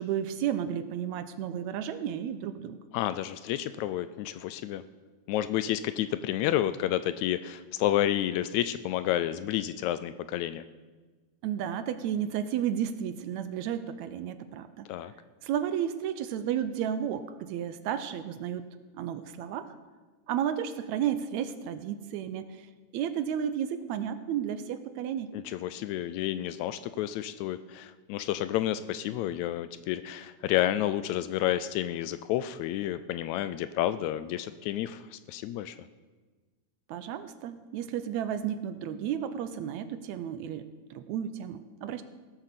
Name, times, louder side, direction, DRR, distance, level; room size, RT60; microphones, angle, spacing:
voice 1, 0.0-2.8 11.4-14.9 15.4-18.7 18.9-19.7 20.3-25.3 36.9-42.0, right 9 dB, 80° right, 11 dB, 1.8 m, -32 dB
voice 2, 2.9-4.8 5.3-10.6 14.9-15.1 25.3-35.8, left 12 dB, 80° left, 13 dB, 1.8 m, -30 dB
16.5 x 7.5 x 6.7 m, 1.3 s
omnidirectional pair, 3.5 m